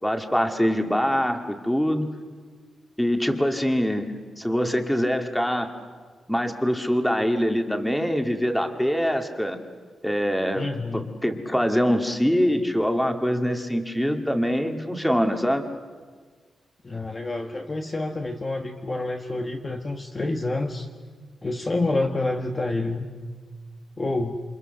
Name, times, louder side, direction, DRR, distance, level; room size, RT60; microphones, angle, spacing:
voice 1, 0.0-2.1 3.0-4.1 4.4-5.7 6.3-9.6 10.0-10.7 10.9-15.7, equal, 5° left, 5 dB, 2.0 m, -24 dB
voice 2, 10.5-11.1 16.8-20.9 21.4-23.1 24.0-24.4, left 2 dB, 25° left, 3 dB, 1.3 m, -28 dB
28.5 x 27.0 x 6.7 m, 1.5 s
wide cardioid pair, 150°, 0 cm